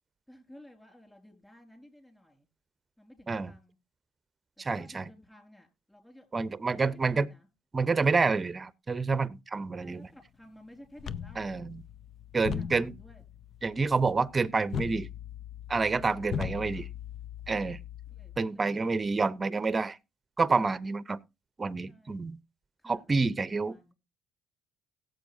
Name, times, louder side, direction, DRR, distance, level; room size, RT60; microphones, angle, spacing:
voice 1, 0.3-2.5 3.0-3.8 4.7-6.3 6.7-7.5 9.8-11.7 12.4-13.2 16.2-16.9 18.1-19.2 21.9-22.3 22.8-23.2 23.6-23.9, left 1 dB, 10° left, 4.5 m, -55 dB
voice 2, 4.6-5.1 6.3-7.3 7.7-10.1 11.4-11.8 12.3-12.9 13.6-15.1 15.7-16.9 17.5-17.8 18.4-20.0 20.4-21.2 21.6-22.4 22.8-23.7, right 4 dB, 30° right, 0.7 m, -28 dB
sound 1, 11.0-18.4, left 8 dB, 55° left, 0.6 m, -39 dB
17.5 x 7.8 x 2.7 m
supercardioid pair, 65°, 0 cm